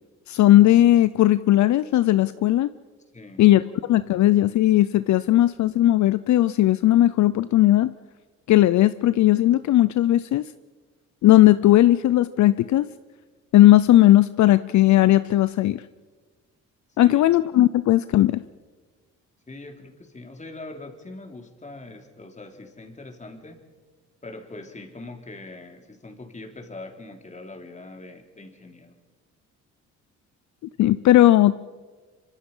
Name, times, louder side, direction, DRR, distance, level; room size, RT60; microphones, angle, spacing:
voice 1, 0.3-2.7 3.4-7.9 8.5-10.5 11.2-12.9 13.5-15.8 17.0-18.4 30.8-31.5, left 14 dB, 70° left, 14 dB, 0.6 m, -17 dB
voice 2, 3.1-3.4 17.0-17.2 19.5-23.6 24.2-29.0, left 2 dB, 25° left, 3 dB, 3.5 m, -42 dB
25.0 x 25.0 x 5.6 m, 1.4 s
cardioid pair, 90°, 30 cm